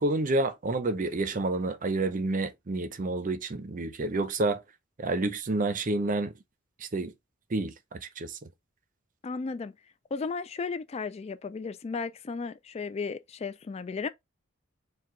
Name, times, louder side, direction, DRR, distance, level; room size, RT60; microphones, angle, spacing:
voice 1, 0.0-4.6 5.0-6.3 6.9-7.1 7.5-8.4, right 2 dB, 40° right, 0.6 m, -29 dB
voice 2, 9.2-9.7 10.1-14.1, left 4 dB, 30° left, 0.3 m, -34 dB
4.6 x 2.3 x 3.7 m
head